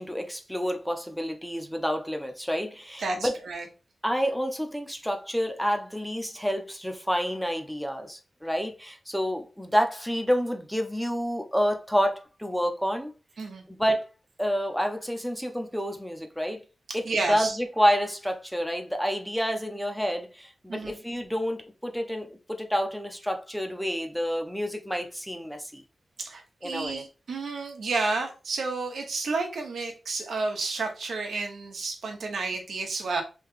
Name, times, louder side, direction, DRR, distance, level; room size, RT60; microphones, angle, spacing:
voice 1, 0.0-3.4 4.0-13.1 13.7-14.1 14.4-16.6 16.9-25.8 26.6-27.0, equal, ahead, 0.5 m, -29 dB
voice 2, 3.0-3.6 13.4-13.6 17.0-17.6 20.7-20.9 26.2-33.2, right 3 dB, 90° right, 0.9 m, -31 dB
3.1 x 2.8 x 3.6 m
wide cardioid pair, 130°, 0 cm